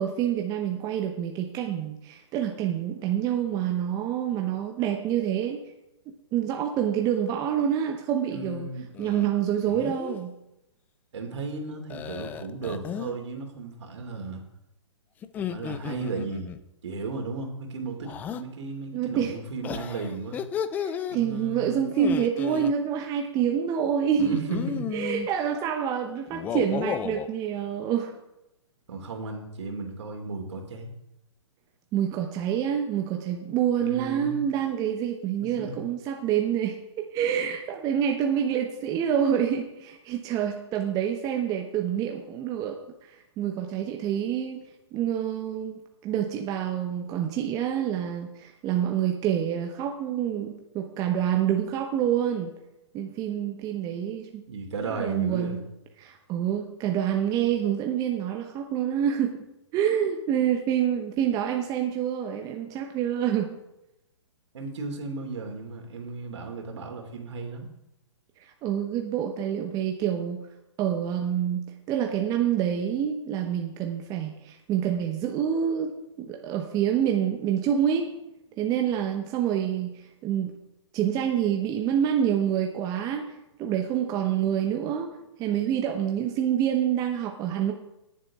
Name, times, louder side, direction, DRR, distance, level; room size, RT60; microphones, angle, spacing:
voice 1, 0.0-5.6 6.1-8.7 9.0-10.3 18.9-19.3 20.8-24.5 24.9-28.1 31.9-36.8 37.1-42.8 43.1-44.6 44.9-52.5 52.9-54.4 55.0-55.6 56.0-59.4 59.7-63.6 68.4-70.4 70.8-75.9 76.2-78.1 78.6-79.9 80.2-80.5 80.9-83.2 83.6-85.1 85.4-87.7, right 9 dB, 20° right, 3 dB, 0.9 m, -27 dB
voice 2, 8.3-8.9 11.1-14.4 15.5-16.5 16.8-20.4 21.1-21.8 24.1-24.9 28.9-30.9 33.8-34.4 35.4-35.8 54.5-55.6 64.5-67.7, right 3 dB, 65° right, 3 dB, 2.9 m, -35 dB
sound 1, 8.9-9.3 9.7-10.2 11.9-13.2 15.2-16.6 18.0-18.4 19.6-21.2 21.9-22.7 24.2-25.3 26.3-27.3, left 8 dB, 10° left, 0.3 m, -33 dB
18.5 x 7.4 x 3.7 m, 0.90 s
hypercardioid pair, 135°, 16 cm